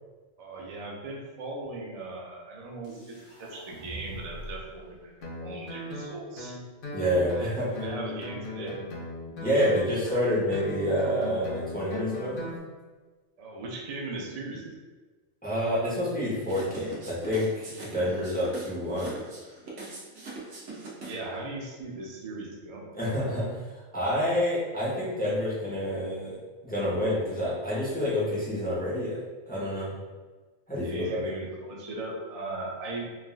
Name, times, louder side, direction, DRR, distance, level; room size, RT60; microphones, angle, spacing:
voice 1, 0.4-6.5 7.4-8.8 13.4-14.7 21.0-22.9 30.8-33.1, right 2 dB, 80° right, -2 dB, 0.3 m, -38 dB
sound 1, 2.8-4.8, right 1 dB, 75° left, 1.3 m, -43 dB
Guitar, 5.2-12.6, left 1 dB, 50° left, 0.7 m, -38 dB
voice 2, 6.9-7.7 9.4-12.5 15.4-19.1 23.0-26.4 26.6-29.9 30.7-31.3, equal, 10° left, -8 dB, 0.5 m, -28 dB
sound 2, 16.4-21.4, right 3 dB, 65° right, 1.0 m, -42 dB
3.4 x 2.2 x 2.4 m, 1.3 s
omnidirectional pair, 1.4 m